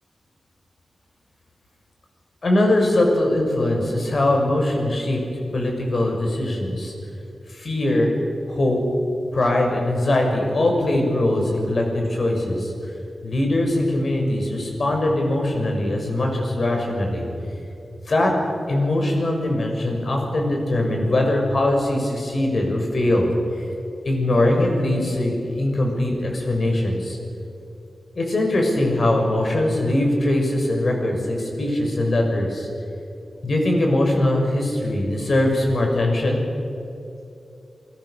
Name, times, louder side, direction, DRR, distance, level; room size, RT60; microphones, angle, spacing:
voice 1, 2.4-5.2 5.5-6.9 7.5-8.1 8.5-8.8 9.3-12.7 13.2-17.2 18.1-18.3 18.7-23.6 24.0-27.2 28.1-32.7 33.4-36.4, left 1 dB, 55° left, 1 dB, 6.4 m, -21 dB
28.0 x 22.0 x 6.8 m, 2.7 s
wide cardioid pair, 85°, 0 cm